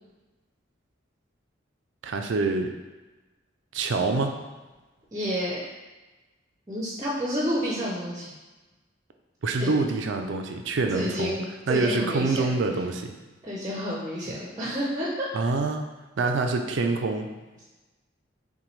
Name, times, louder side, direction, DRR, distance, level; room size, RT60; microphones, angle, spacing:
voice 1, 2.0-2.7 3.7-4.4 9.4-11.4 11.7-13.1 15.3-15.8 16.2-17.3, right 3 dB, 75° right, 5 dB, 0.4 m, -26 dB
voice 2, 5.1-5.6 6.7-8.3 9.6-9.7 10.9-12.5 13.4-15.5, equal, 20° right, -5 dB, 0.6 m, -30 dB
5.8 x 2.2 x 3.1 m, 1.2 s
head